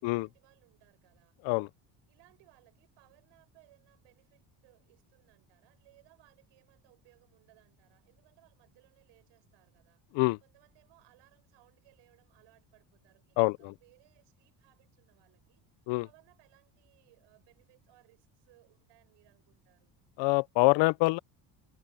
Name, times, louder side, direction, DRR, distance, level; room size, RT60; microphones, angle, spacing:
voice 1, 0.0-1.4 2.1-20.0, right 19 dB, 80° right, 7.5 m, -65 dB
voice 2, 13.4-13.7 15.9-16.1 20.2-21.2, left 24 dB, 85° left, 0.6 m, -25 dB
cardioid pair, 160°, 43 cm